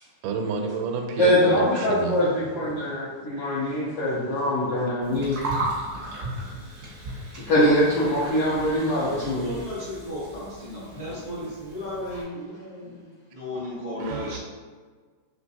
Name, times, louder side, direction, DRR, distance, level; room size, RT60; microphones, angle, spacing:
voice 1, 0.2-2.8 14.0-14.4, right 4 dB, 85° right, 4 dB, 2.1 m, -30 dB
voice 2, 1.2-5.4 7.5-9.5 12.6-12.9, left 1 dB, 80° left, -9 dB, 1.3 m, -23 dB
Gurgling, 5.0-12.2, right 1 dB, 65° right, 0.9 m, -36 dB
voice 3, 9.0-12.4 12.8-12.9 13.3-14.4, left 1 dB, 50° left, -11 dB, 0.7 m, -35 dB
5.0 x 3.0 x 2.7 m, 1.5 s
omnidirectional pair, 3.6 m